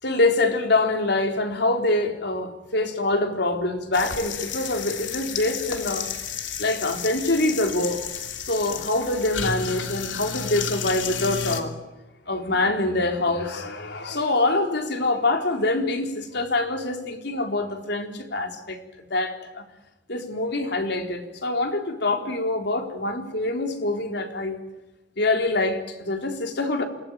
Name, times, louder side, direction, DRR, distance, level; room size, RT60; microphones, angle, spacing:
voice 1, 0.0-6.1 6.6-8.0 8.4-11.8 12.3-18.8 19.1-19.6 20.1-24.6 25.2-26.8, left 2 dB, 65° left, 5 dB, 4.1 m, -25 dB
sound 1, 3.9-11.6, left 6 dB, 85° left, 3.1 m, -32 dB
28.0 x 19.0 x 9.2 m, 1.0 s
head